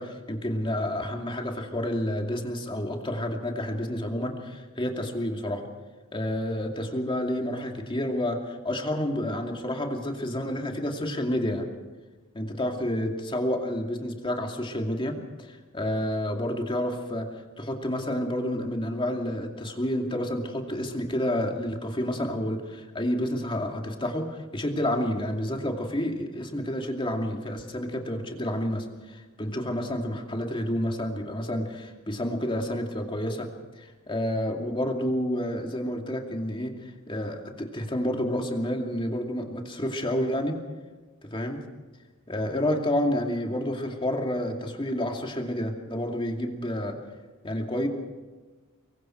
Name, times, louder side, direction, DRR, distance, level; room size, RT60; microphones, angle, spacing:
voice 1, 0.0-5.6 6.1-11.7 12.3-17.3 17.6-33.5 33.8-40.6 41.3-41.6 42.3-47.0 47.4-47.9, left 1 dB, 25° left, 2 dB, 2.5 m, -29 dB
26.0 x 23.0 x 4.6 m, 1.3 s
head